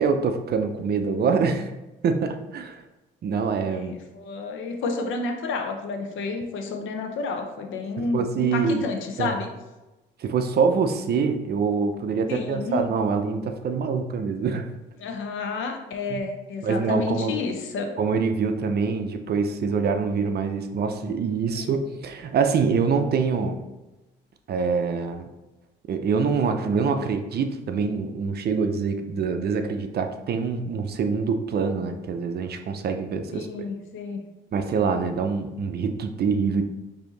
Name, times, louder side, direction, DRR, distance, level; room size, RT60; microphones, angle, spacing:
voice 1, 0.0-1.7 2.0-2.8 3.2-4.0 8.0-8.8 9.2-9.3 10.2-14.7 16.1-16.2 16.6-17.4 18.0-23.6 24.5-25.3 25.9-33.5 34.5-36.6, right 5 dB, 55° right, 7 dB, 0.5 m, -25 dB
voice 2, 3.7-9.5 12.3-12.9 15.0-17.9 21.5-21.7 33.3-34.2, left 4 dB, 75° left, 4 dB, 0.7 m, -30 dB
4.9 x 2.8 x 3.8 m, 1.0 s
cardioid pair, 90°, 20 cm